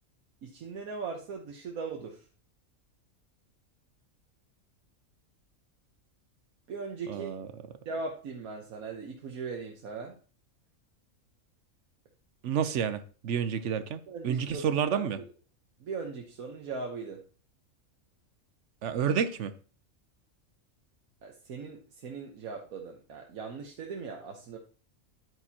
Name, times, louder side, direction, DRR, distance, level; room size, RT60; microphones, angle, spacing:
voice 1, 0.4-2.3 6.7-7.3 7.8-10.2 14.1-15.2 15.8-17.2 21.2-24.6, right 4 dB, 85° right, 1.4 m, -39 dB
voice 2, 7.1-7.5 12.4-15.2 18.8-19.5, right 8 dB, 65° right, 1.0 m, -30 dB
10.0 x 9.0 x 2.8 m
omnidirectional pair, 1.4 m